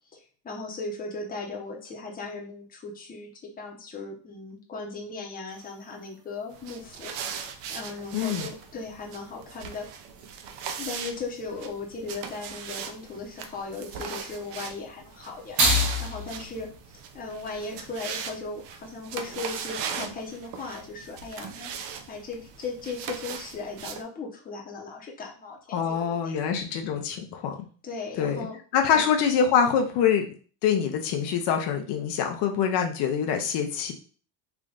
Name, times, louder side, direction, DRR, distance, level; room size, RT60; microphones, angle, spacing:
voice 1, 0.1-9.9 10.8-15.6 16.0-26.5 27.8-28.6 28.9-29.0, left 3 dB, 20° left, -1 dB, 0.8 m, -37 dB
sound 1, 5.5-18.2, equal, 40° right, 1.0 m, -34 dB
sound 2, 6.5-24.0, right 7 dB, 65° right, 0.7 m, -39 dB
voice 2, 8.1-8.4 25.7-27.6 28.2-28.5 28.7-30.3 30.6-33.9, left 7 dB, 65° left, 4 dB, 0.7 m, -25 dB
3.5 x 2.5 x 3.8 m, 0.41 s
cardioid pair, 140°, 45 cm